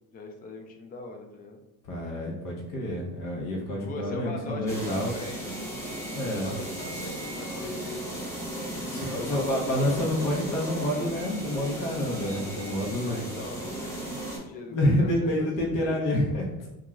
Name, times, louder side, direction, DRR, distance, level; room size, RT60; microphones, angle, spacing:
voice 1, 0.1-1.6 3.7-5.7 6.2-8.3 8.8-10.7 13.0-15.5 15.8-16.0, left 2 dB, 25° left, 3 dB, 0.4 m, -41 dB
voice 2, 1.8-5.1 6.1-6.5 8.9-13.2 14.7-16.5, left 1 dB, 55° left, -2 dB, 0.8 m, -28 dB
sound 1, 4.7-14.4, right 1 dB, 5° left, 0.8 m, -36 dB
2.4 x 2.3 x 3.0 m, 1.0 s
cardioid pair, 100°, 39 cm